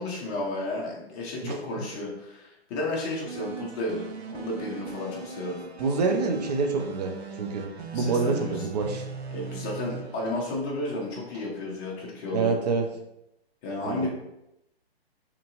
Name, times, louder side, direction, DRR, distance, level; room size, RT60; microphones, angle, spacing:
voice 1, 0.0-5.6 7.9-8.6 9.3-12.5 13.6-14.1, left 2 dB, 20° left, -3 dB, 0.6 m, -32 dB
sound 1, 3.2-11.4, right 5 dB, 85° right, 0.6 m, -40 dB
voice 2, 5.8-9.0 12.3-12.8 13.8-14.1, right 4 dB, 40° right, 3 dB, 0.5 m, -27 dB
2.9 x 2.6 x 2.5 m, 0.85 s
figure-of-eight pair, 130°, 31 cm